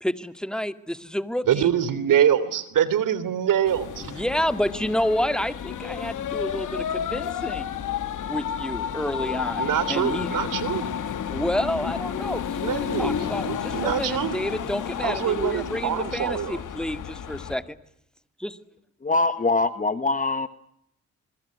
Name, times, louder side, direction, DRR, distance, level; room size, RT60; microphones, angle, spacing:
voice 1, 0.0-1.7 4.0-7.7 8.3-10.3 11.3-17.8 18.4-18.5, equal, ahead, 2.0 m, -29 dB
voice 2, 1.5-4.1 9.5-10.9 12.6-13.2 13.4-14.4 15.0-16.6, right 9 dB, 75° right, 3.2 m, -24 dB
sound 1, 3.7-17.6, left 8 dB, 70° left, 2.5 m, -31 dB
voice 3, 19.0-20.5, left 3 dB, 25° left, 1.4 m, -23 dB
27.0 x 23.0 x 9.4 m
cardioid pair, 80°, 33 cm